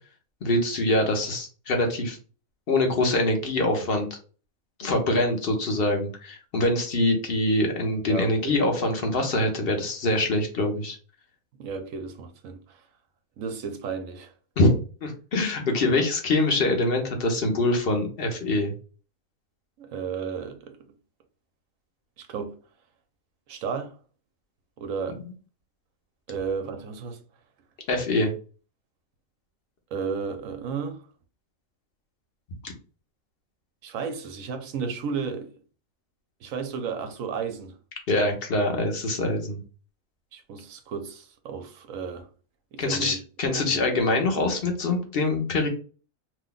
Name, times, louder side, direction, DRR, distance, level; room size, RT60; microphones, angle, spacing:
voice 1, 0.4-2.2 2.7-4.1 4.8-11.0 14.6-14.7 15.0-18.7 27.9-28.3 32.6-32.7 38.1-39.6 42.8-45.7, left 2 dB, 50° left, 0.9 m, -24 dB
voice 2, 8.1-8.6 11.6-12.8 13.4-14.3 19.8-20.7 22.2-22.6 23.5-24.0 24.8-25.2 26.3-27.2 29.9-31.0 33.8-35.5 36.4-37.7 40.3-42.3 42.7-43.2 43.5-43.9, right 6 dB, 80° right, 1.1 m, -33 dB
2.8 x 2.2 x 3.8 m
omnidirectional pair, 1.4 m